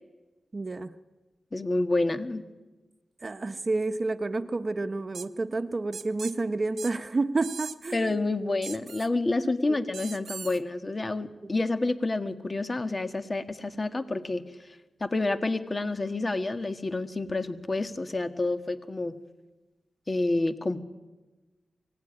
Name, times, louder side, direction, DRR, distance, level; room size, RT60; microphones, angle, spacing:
voice 1, 0.5-0.9 3.2-8.0 9.4-9.8, right 3 dB, 40° right, 10 dB, 1.0 m, -30 dB
voice 2, 1.5-2.4 7.9-14.4 15.0-19.2 20.1-20.8, left 2 dB, 35° left, 9 dB, 1.6 m, -28 dB
sound 1, 5.1-5.3 5.9-6.3 6.8-6.9 7.4-7.9 8.6-9.1 9.9-10.6, right 6 dB, 85° right, 0.9 m, -40 dB
24.0 x 17.5 x 9.9 m, 1.2 s
cardioid pair, 65°, 0 cm